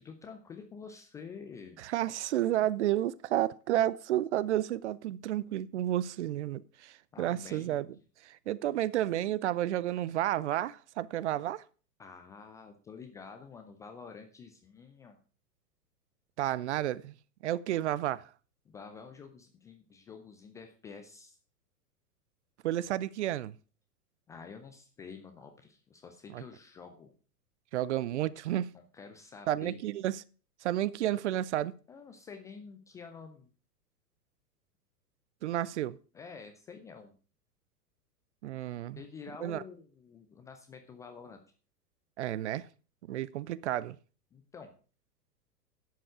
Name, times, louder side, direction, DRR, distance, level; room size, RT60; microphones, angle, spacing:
voice 1, 0.0-1.8 7.1-7.8 12.0-15.2 18.7-21.4 24.3-27.1 28.7-29.8 31.9-33.5 36.1-37.1 39.0-41.4 44.3-44.7, left 5 dB, 5° left, 0.4 m, -48 dB
voice 2, 1.8-7.9 8.2-11.6 16.4-17.2 17.4-18.3 22.6-23.5 26.3-26.4 27.7-28.7 29.5-30.2 30.6-31.7 35.4-36.0 38.4-39.0 39.4-39.6 42.2-42.7 43.1-44.0, right 13 dB, 45° right, 0.6 m, -31 dB
11.0 x 7.6 x 4.9 m
figure-of-eight pair, 105°, 48 cm